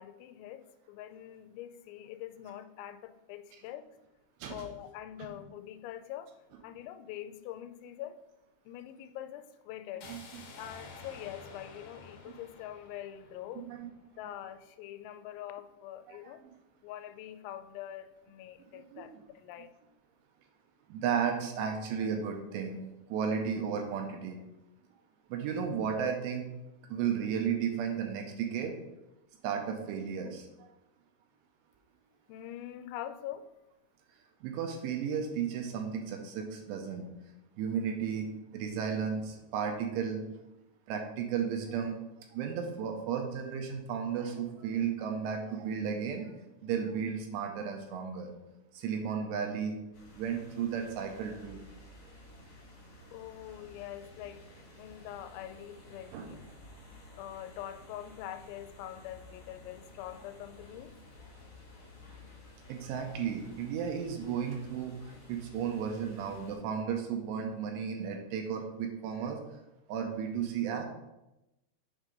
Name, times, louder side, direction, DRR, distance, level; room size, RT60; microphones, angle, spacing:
voice 1, 0.0-3.9 4.5-6.3 6.6-8.2 8.7-10.1 10.6-13.7 14.2-16.4 16.8-19.7 32.3-33.5 53.1-54.4 54.8-56.4 57.1-61.0, left 11 dB, 90° left, 10 dB, 2.9 m, -44 dB
sound 1, 10.0-14.1, left 3 dB, 70° left, 2.5 m, -51 dB
voice 2, 10.1-10.4 13.6-13.9 16.1-16.2 18.7-19.2 20.9-22.8 23.1-24.4 25.3-26.5 26.9-28.7 29.4-30.7 34.4-37.1 37.6-38.3 38.5-40.2 40.9-42.0 42.3-48.3 48.7-49.8 50.1-51.6 56.1-56.3 62.7-65.0 65.3-69.4 69.9-70.9, right 7 dB, 80° right, 3 dB, 2.7 m, -34 dB
pioneer square, 49.9-66.6, left 1 dB, 45° left, 1.7 m, -53 dB
7.5 x 3.6 x 5.2 m, 0.95 s
omnidirectional pair, 5.2 m